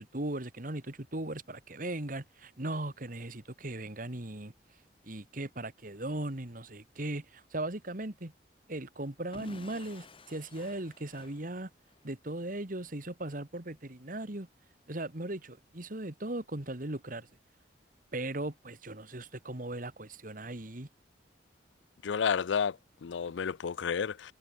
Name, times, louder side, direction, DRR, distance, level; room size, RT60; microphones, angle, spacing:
voice 1, 0.0-4.5 5.0-8.3 8.7-11.7 12.0-14.5 14.9-17.3 18.1-20.9, right 1 dB, 50° right, 2.1 m, -38 dB
Explosion / Shatter, 9.3-12.1, left 2 dB, 30° left, 3.3 m, -52 dB
voice 2, 22.0-24.3, left 6 dB, 85° left, 0.5 m, -31 dB
head